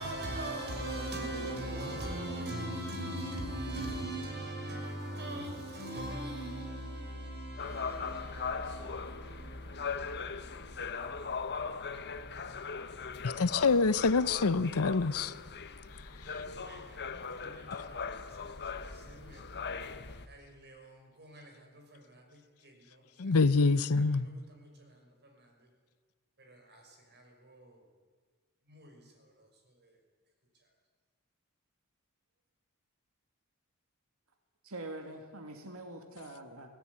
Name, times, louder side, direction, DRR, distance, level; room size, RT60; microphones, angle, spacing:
voice 1, 0.0-11.5 16.1-19.8 20.3-25.7 26.4-27.8 28.7-29.9, right 1 dB, 50° right, 5.9 m, -42 dB
sound 1, 7.6-20.3, left 5 dB, 50° left, 1.3 m, -40 dB
voice 2, 13.2-15.3 23.2-24.3, left 4 dB, 75° left, 0.8 m, -26 dB
voice 3, 34.6-36.7, right 2 dB, 70° right, 2.4 m, -44 dB
24.5 x 16.5 x 9.6 m
head